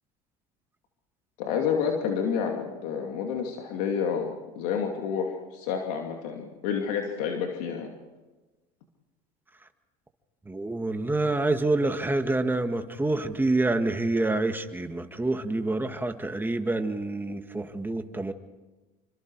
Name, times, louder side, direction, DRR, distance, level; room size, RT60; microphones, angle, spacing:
voice 1, 1.4-7.9, left 7 dB, 80° left, 2 dB, 2.6 m, -29 dB
voice 2, 10.5-18.3, right 2 dB, 10° right, 7 dB, 1.9 m, -27 dB
27.0 x 25.5 x 4.8 m, 1.2 s
supercardioid pair, 95°, 20 cm